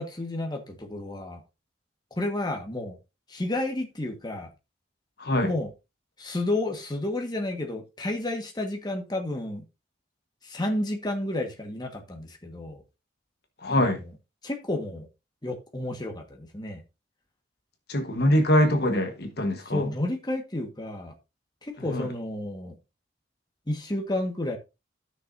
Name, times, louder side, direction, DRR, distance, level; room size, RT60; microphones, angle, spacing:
voice 1, 0.0-1.4 2.2-3.0 3.3-4.5 5.4-5.7 6.2-9.6 10.4-12.8 14.4-15.1 15.4-16.8 19.7-21.1 21.6-22.8 23.7-24.6, left 1 dB, 20° left, 1.5 m, -31 dB
voice 2, 5.2-5.5 13.6-14.0 17.9-19.9 21.8-22.1, left 1 dB, 60° left, 1.3 m, -24 dB
14.0 x 6.3 x 2.6 m
head